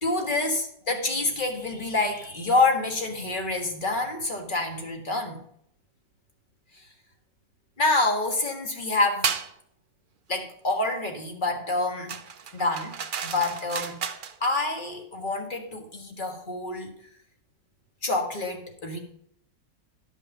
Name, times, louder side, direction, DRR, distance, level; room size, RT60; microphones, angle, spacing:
voice 1, 0.0-5.4 6.7-6.8 7.8-9.3 10.3-12.2 12.5-14.0 14.4-16.9 18.0-19.0, left 2 dB, 35° left, 4 dB, 1.6 m, -27 dB
sound 1, 9.2-9.5 12.1-14.4, right 7 dB, 55° right, 0.5 m, -32 dB
12.5 x 5.4 x 5.3 m, 0.70 s
omnidirectional pair, 1.6 m